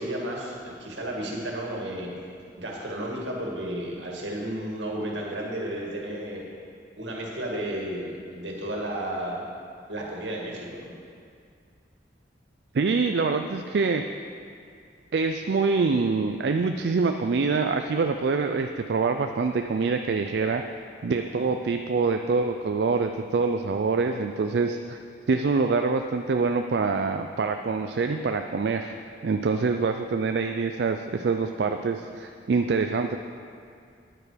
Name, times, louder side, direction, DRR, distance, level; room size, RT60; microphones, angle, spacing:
voice 1, 0.0-2.1 2.6-6.5 7.0-9.4 9.9-10.9 21.4-21.5, right 1 dB, 85° right, -2 dB, 2.1 m, -33 dB
voice 2, 12.7-14.0 15.1-20.6 21.0-25.0 25.3-28.9 29.2-33.2, right 4 dB, 65° right, 6 dB, 0.4 m, -25 dB
9.7 x 9.2 x 5.0 m, 2.3 s
head